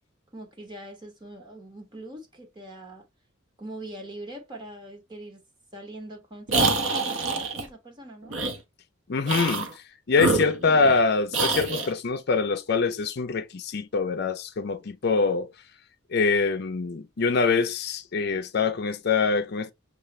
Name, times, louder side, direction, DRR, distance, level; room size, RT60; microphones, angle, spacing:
voice 1, 0.3-3.0 3.6-5.4 5.7-8.4, right 1 dB, 25° right, 1.3 m, -42 dB
sound 1, 6.5-7.7 8.3-8.6 9.2-9.7 10.1-11.0 11.3-11.9, right 3 dB, 80° right, 1.0 m, -26 dB
voice 2, 9.1-9.7 10.1-15.5 16.1-19.7, left 4 dB, 55° left, 0.5 m, -24 dB
6.9 x 2.4 x 3.2 m
head